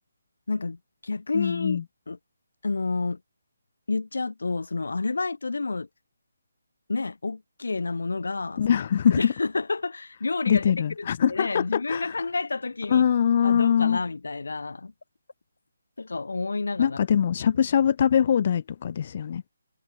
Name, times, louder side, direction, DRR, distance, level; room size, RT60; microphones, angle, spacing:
voice 1, 0.5-1.8 2.1-2.2 2.6-3.2 3.9-5.9 6.9-8.8 9.1-13.1 13.4-14.9 16.0-17.0, left 3 dB, 85° left, 4.5 m, -30 dB
voice 2, 1.3-1.8 8.6-9.3 10.5-12.2 12.9-14.0 16.8-19.4, left 8 dB, 30° left, 0.8 m, -22 dB
hypercardioid pair, 175°, 0 cm